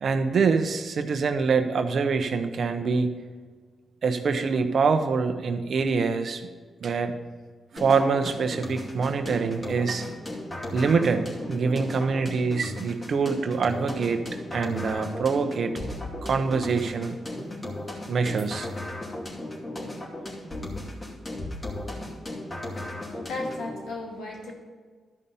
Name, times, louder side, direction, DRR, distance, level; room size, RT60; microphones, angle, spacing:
voice 1, 0.0-3.1 4.0-6.4 6.8-7.1 7.7-10.0 10.7-14.2 14.5-15.7 16.2-17.2 18.1-18.7, right 5 dB, 65° right, 8 dB, 0.8 m, -25 dB
sound 1, 7.8-23.8, left 1 dB, 30° left, 2.6 m, -36 dB
voice 2, 23.1-24.5, left 2 dB, 80° left, -1 dB, 2.1 m, -35 dB
12.0 x 5.5 x 5.5 m, 1.5 s
supercardioid pair, 50°, 0 cm